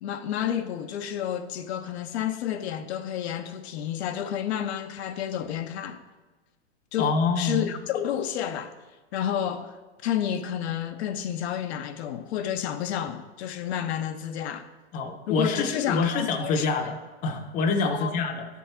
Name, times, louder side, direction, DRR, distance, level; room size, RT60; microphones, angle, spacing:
voice 1, 0.0-6.0 6.9-8.7 9.1-9.8 10.0-14.7 15.3-16.7 17.8-18.1, left 10 dB, 65° left, 0.5 m, -30 dB
voice 2, 7.0-7.7 14.9-18.5, left 4 dB, 25° left, 0.6 m, -26 dB
8.6 x 3.5 x 4.3 m
hypercardioid pair, 130°, 35 cm